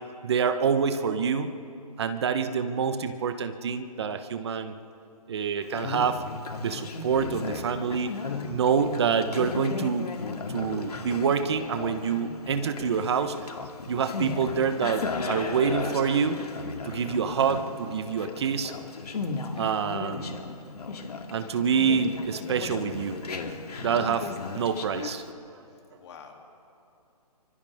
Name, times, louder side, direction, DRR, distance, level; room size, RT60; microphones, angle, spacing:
voice 1, 0.2-1.5 2.0-4.7 5.3-6.2 6.6-8.1 8.5-10.1 10.5-13.4 13.9-16.4 16.8-18.7 19.6-20.4 21.3-23.2 23.8-24.3 24.5-25.2, right 6 dB, 40° right, 9 dB, 1.1 m, -26 dB
Conversation, 5.6-25.3, left 4 dB, 70° left, 2.3 m, -36 dB
voice 2, 24.0-24.4 25.7-26.4, left 6 dB, 45° left, 2 dB, 3.0 m, -49 dB
29.0 x 25.0 x 3.6 m, 2.6 s
hypercardioid pair, 160°, 20 cm